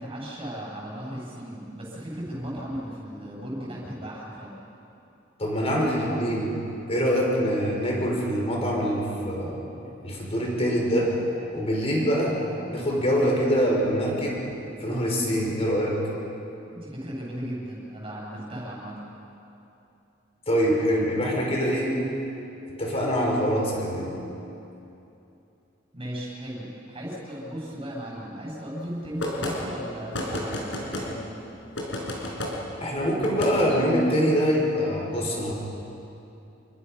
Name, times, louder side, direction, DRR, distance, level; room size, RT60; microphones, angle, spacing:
voice 1, 0.0-4.6 16.7-19.1 25.9-31.3, equal, 30° right, -5 dB, 7.9 m, -36 dB
voice 2, 5.4-6.5 6.9-9.6 10.0-11.2 11.5-12.4 12.7-14.4 14.8-16.0 20.5-22.0 22.8-24.2 32.8-35.5, equal, 30° left, -2 dB, 5.4 m, -24 dB
sound 1, 29.2-29.6 30.1-31.1 31.8-32.5 33.2-33.5, left 1 dB, 65° left, 5.0 m, -30 dB
28.0 x 23.5 x 5.8 m, 2.8 s
head